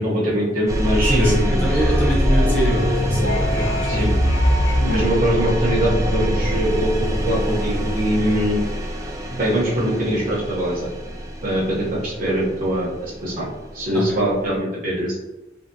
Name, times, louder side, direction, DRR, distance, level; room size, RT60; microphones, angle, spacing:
voice 1, 0.0-1.7 3.9-4.1 4.8-8.6 9.4-10.8 11.4-13.5 13.7-15.2, equal, 50° right, -4 dB, 0.9 m, -22 dB
sound 1, 0.7-14.6, equal, 20° right, 0.4 m, -25 dB
voice 2, 1.0-4.2 13.9-14.2, right 1 dB, 10° left, -5 dB, 0.8 m, -24 dB
sound 2, 1.7-5.1, equal, 90° left, 0.6 m, -21 dB
2.8 x 2.8 x 2.6 m, 1.0 s
head